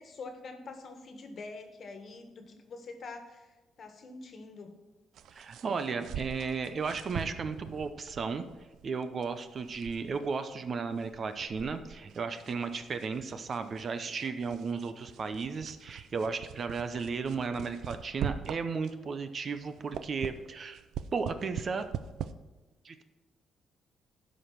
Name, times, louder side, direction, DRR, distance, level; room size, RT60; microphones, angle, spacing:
voice 1, 0.0-4.7, left 3 dB, 50° left, 6 dB, 1.5 m, -45 dB
sound 1, 5.1-19.1 19.5-22.3, right 9 dB, 75° right, 0.5 m, -43 dB
voice 2, 5.3-8.4 8.8-20.8 21.1-21.9 22.8-23.0, right 5 dB, 45° right, 9 dB, 0.7 m, -34 dB
12.5 x 5.2 x 5.9 m, 1.2 s
cardioid pair, 100°, 0 cm